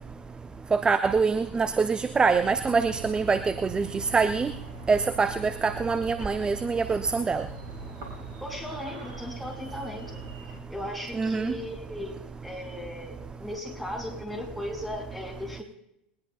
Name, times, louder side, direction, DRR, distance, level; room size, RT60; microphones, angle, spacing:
voice 1, 0.7-4.5 4.9-7.5 11.1-11.5, right 4 dB, 15° right, 11 dB, 0.6 m, -24 dB
sound 1, 2.5-10.6, right 3 dB, 55° right, 4.7 m, -43 dB
voice 2, 8.4-12.2 12.4-15.6, left 1 dB, ahead, -1 dB, 5.1 m, -37 dB
21.0 x 20.0 x 2.3 m, 0.79 s
figure-of-eight pair, 80°, 6 cm